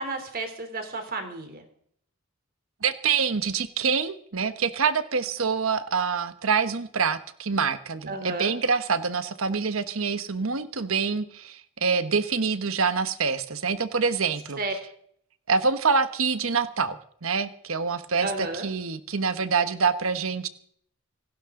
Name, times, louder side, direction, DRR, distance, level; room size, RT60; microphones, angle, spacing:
voice 1, 0.0-1.6 8.1-8.5 14.6-14.7 18.2-18.7, right 3 dB, 40° right, 6 dB, 3.2 m, -32 dB
voice 2, 2.8-14.6 15.5-20.5, right 5 dB, 65° right, 11 dB, 1.1 m, -26 dB
26.5 x 12.0 x 3.8 m, 0.63 s
head